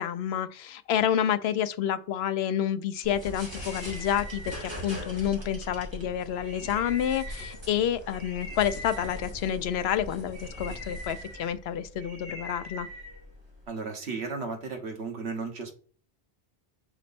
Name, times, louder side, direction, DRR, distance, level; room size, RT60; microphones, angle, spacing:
voice 1, 0.0-12.9, left 9 dB, 75° left, 0.8 m, -29 dB
sound 1, 3.0-13.6, equal, 25° right, 2.3 m, -40 dB
voice 2, 13.7-15.7, right 4 dB, 85° right, 1.6 m, -34 dB
6.0 x 4.2 x 4.2 m
omnidirectional pair, 1.1 m